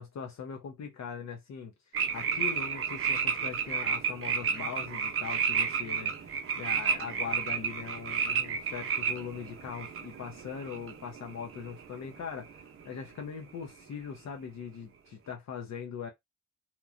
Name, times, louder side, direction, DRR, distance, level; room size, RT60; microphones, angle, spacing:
voice 1, 0.0-1.7 2.1-6.3 6.6-16.1, left 6 dB, 65° left, 0.7 m, -41 dB
sound 1, 1.9-12.2 12.4-12.8, right 6 dB, 50° right, 0.6 m, -32 dB
2.9 x 2.2 x 2.4 m
wide cardioid pair, 140°, 29 cm